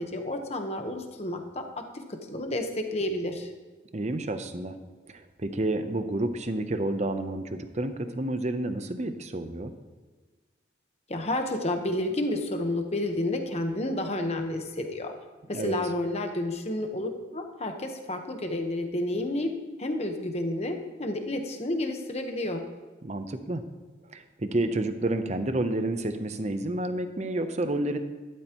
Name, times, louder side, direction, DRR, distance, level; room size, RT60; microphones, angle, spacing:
voice 1, 0.0-1.8 2.1-3.5 11.1-15.1 15.5-19.5 19.8-22.6, left 1 dB, 35° left, 5 dB, 1.1 m, -30 dB
voice 2, 3.9-4.8 5.1-9.7 15.5-15.8 23.0-23.6 24.1-28.0, right 1 dB, 35° right, 9 dB, 0.8 m, -30 dB
12.5 x 12.0 x 3.0 m, 1.3 s
head